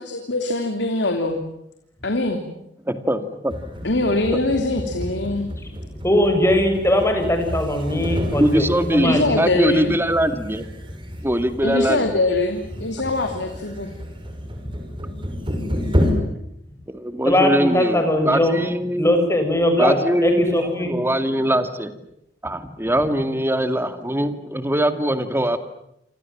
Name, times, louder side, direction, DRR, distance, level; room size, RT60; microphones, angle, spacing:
voice 1, 0.0-1.4 2.0-2.4 3.8-5.5 9.0-9.9 11.6-13.9, left 2 dB, 70° left, 5 dB, 3.1 m, -23 dB
voice 2, 2.9-3.5 8.4-10.6 11.2-12.2 16.9-19.1 19.8-21.9 22.4-25.6, right 1 dB, 15° right, 10 dB, 2.3 m, -22 dB
sound 1, 3.5-16.1, equal, 30° right, 6.0 m, -30 dB
voice 3, 6.0-9.4 17.2-18.6 19.0-20.0 20.2-20.9, left 1 dB, 15° left, 5 dB, 7.2 m, -20 dB
28.0 x 26.5 x 7.4 m, 0.78 s
head